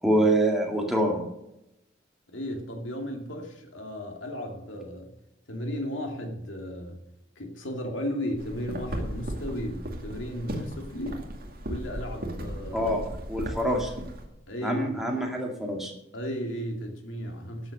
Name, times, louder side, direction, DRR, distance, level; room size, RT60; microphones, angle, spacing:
voice 1, 0.0-1.2 12.7-13.0 13.3-13.9 14.6-15.9, right 1 dB, ahead, 0 dB, 2.1 m, -25 dB
voice 2, 2.3-5.1 5.5-7.0 7.4-11.3 11.7-12.9 13.6-13.8 14.5-15.0 16.1-17.7, equal, 75° left, 2 dB, 2.5 m, -35 dB
sound 1, 8.4-14.2, equal, 45° right, 2.3 m, -36 dB
12.5 x 8.0 x 6.6 m, 0.86 s
head